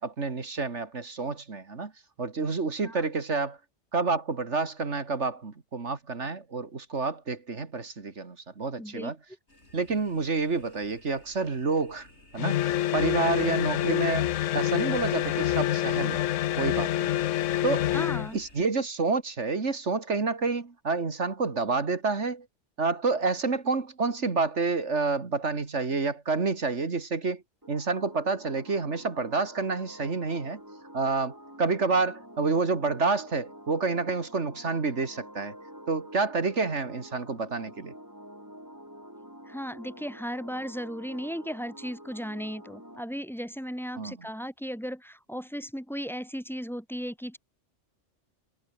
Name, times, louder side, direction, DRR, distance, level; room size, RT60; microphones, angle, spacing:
voice 1, 0.0-1.9 2.2-3.6 3.9-9.2 9.7-12.1 12.3-14.3 14.5-16.2 16.5-17.1 17.6-17.9 18.3-22.5 22.8-27.4 27.7-30.6 30.9-35.5 35.9-37.9 44.0-44.2, right 4 dB, 65° right, 2.5 m, -29 dB
voice 2, 8.8-9.1 17.9-18.4 39.5-47.4, equal, ahead, 2.1 m, -36 dB
sound 1, 9.5-18.7, left 1 dB, 60° left, 7.1 m, -55 dB
sound 2, 12.4-18.3, left 13 dB, 80° left, 1.0 m, -27 dB
sound 3, 27.6-43.0, equal, 15° right, 7.2 m, -48 dB
omnidirectional pair, 1.3 m